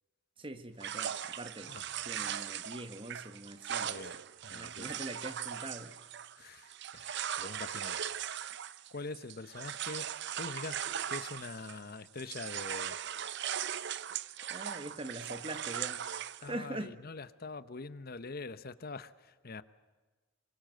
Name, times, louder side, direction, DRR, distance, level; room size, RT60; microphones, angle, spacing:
voice 1, 0.4-1.7 2.0-4.0 4.5-5.9 14.5-16.1 16.4-16.9, right 1 dB, 25° right, 10 dB, 1.5 m, -43 dB
sound 1, 0.8-11.9 12.2-16.5, right 9 dB, 60° right, 0.7 m, -39 dB
voice 2, 1.7-2.3 3.7-4.1 4.4-4.9 6.4-8.0 8.9-10.1 10.4-10.8 11.1-13.0 16.4-19.6, left 3 dB, 50° left, 14 dB, 0.9 m, -44 dB
24.0 x 22.5 x 7.7 m, 1.3 s
head